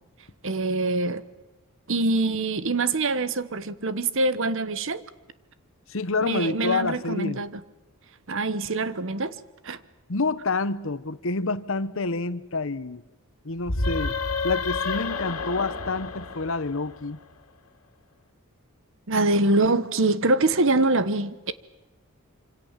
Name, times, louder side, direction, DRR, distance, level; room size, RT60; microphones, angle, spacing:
voice 1, 0.4-1.2 1.9-5.0 6.2-7.5 8.3-9.4 9.6-9.8 19.1-21.5, right 2 dB, 60° right, 1.2 m, -24 dB
voice 2, 5.9-7.4 10.1-13.0 13.4-14.2 14.4-17.2, left 3 dB, 60° left, 1.0 m, -28 dB
sound 1, 13.6-17.2, left 4 dB, 80° left, 2.6 m, -30 dB
26.0 x 26.0 x 7.5 m
head